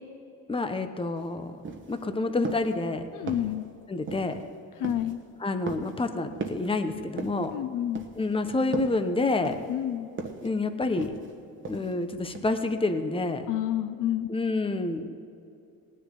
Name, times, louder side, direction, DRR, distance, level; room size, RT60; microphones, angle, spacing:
voice 1, 0.5-1.6 1.9-3.0 3.9-4.4 5.4-7.6 8.2-9.6 10.4-11.1 11.7-13.4 14.3-15.2, left 3 dB, 15° left, 8 dB, 1.0 m, -28 dB
sound 1, 1.2-1.3 1.6-2.0 2.4-2.8 3.3-3.6 4.1-4.4 4.8-5.1 5.7-6.0 6.4-6.7 7.2-7.5 8.0-8.3 8.7-9.0 9.4-9.8 10.2-10.5 11.0-11.3 11.6-12.0 12.3-12.4, right 4 dB, 35° right, 1.3 m, -37 dB
voice 2, 3.1-3.7 4.8-5.2 7.5-8.1 9.7-10.1 13.5-14.3, left 12 dB, 60° left, 10 dB, 0.6 m, -29 dB
18.0 x 10.0 x 4.0 m, 2.6 s
cardioid pair, 95°, 36 cm